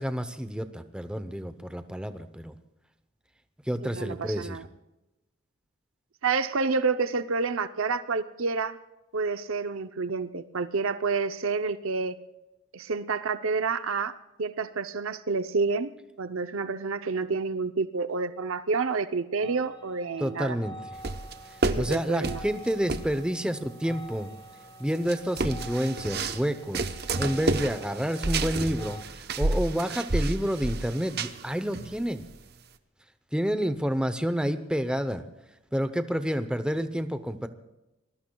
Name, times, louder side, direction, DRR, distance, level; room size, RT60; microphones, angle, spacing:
voice 1, 0.0-2.5 3.7-4.6 20.2-21.0 21.5-24.3 24.8-32.3 33.3-35.2 35.7-37.5, equal, 5° right, 9 dB, 0.7 m, -29 dB
voice 2, 3.8-4.7 6.2-8.8 9.1-12.2 12.7-14.1 14.4-15.9 16.2-20.6 21.6-22.4, right 4 dB, 80° right, 11 dB, 0.7 m, -29 dB
sound 1, 19.4-29.0, equal, 20° left, 1.7 m, -47 dB
sound 2, 21.0-23.2 23.8-23.9 24.9-26.5 26.7-31.5 31.7-32.2, right 2 dB, 50° right, 0.9 m, -30 dB
26.5 x 20.5 x 2.3 m, 0.97 s
head